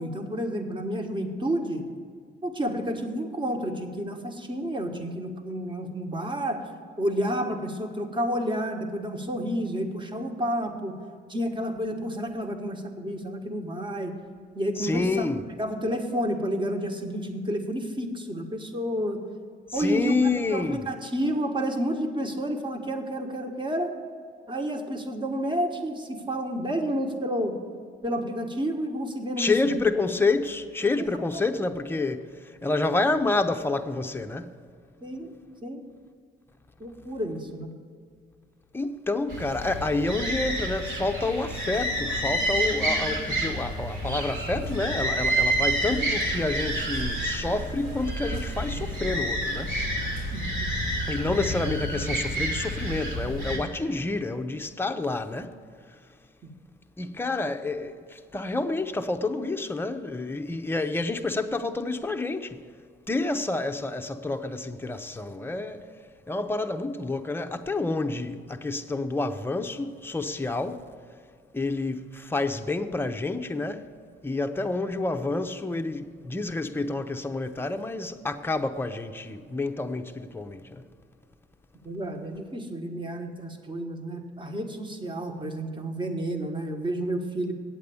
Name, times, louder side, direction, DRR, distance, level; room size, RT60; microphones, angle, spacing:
voice 1, 0.0-1.8 2.4-6.6 7.0-11.0 11.3-14.1 14.5-15.3 15.6-19.2 19.7-20.1 20.5-23.9 24.5-27.6 28.0-29.8 31.0-31.4 35.0-35.3 35.6-35.8 36.8-37.7 50.3-50.7 51.3-51.4 56.4-56.5 81.8-87.5, equal, 25° right, 1.3 m, -30 dB
voice 2, 14.8-15.4 19.7-20.9 29.4-34.5 38.7-49.8 51.1-55.6 57.0-62.6 63.1-65.9 66.3-70.8 71.5-73.9 74.2-80.8, left 3 dB, 10° left, 0.7 m, -28 dB
sound 1, 39.3-53.6, right 1 dB, 75° right, 2.8 m, -29 dB
8.9 x 8.2 x 7.0 m
cardioid pair, 90°, 20 cm